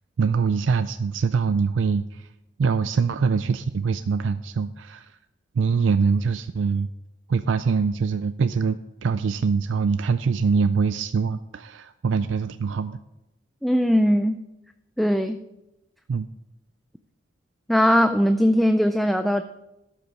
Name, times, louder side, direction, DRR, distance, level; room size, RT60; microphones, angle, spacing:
voice 1, 0.2-2.3 2.6-5.1 5.6-6.9 7.3-8.8 9.0-13.0 16.1-16.3, right 5 dB, 75° right, 10 dB, 0.4 m, -23 dB
voice 2, 13.6-14.4 15.0-15.4 17.7-19.4, equal, ahead, 8 dB, 0.3 m, -20 dB
12.5 x 6.9 x 5.3 m, 0.93 s
head